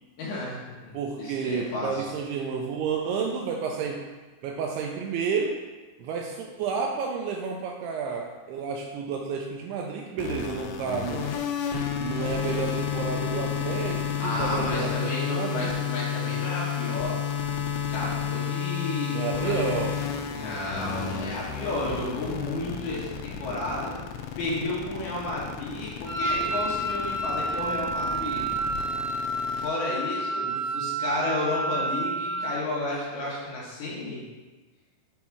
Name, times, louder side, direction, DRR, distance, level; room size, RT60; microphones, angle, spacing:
voice 1, 0.2-0.9 1.2-2.1 14.2-17.2 17.9-19.6 20.3-23.9 24.4-28.4 29.6-30.4 30.7-34.2, left 2 dB, 70° left, -6 dB, 3.2 m, -32 dB
voice 2, 0.9-4.1 4.4-5.6 6.0-11.4 12.0-15.8 19.1-19.9 30.4-30.8, right 5 dB, 85° right, 1 dB, 2.3 m, -31 dB
sound 1, 10.2-29.7, left 8 dB, 85° left, 2.8 m, -31 dB
Wind instrument woodwind instrument, 26.0-32.6, right 2 dB, 35° left, 1.9 m, -30 dB
8.0 x 3.1 x 4.6 m, 1.3 s
omnidirectional pair, 5.0 m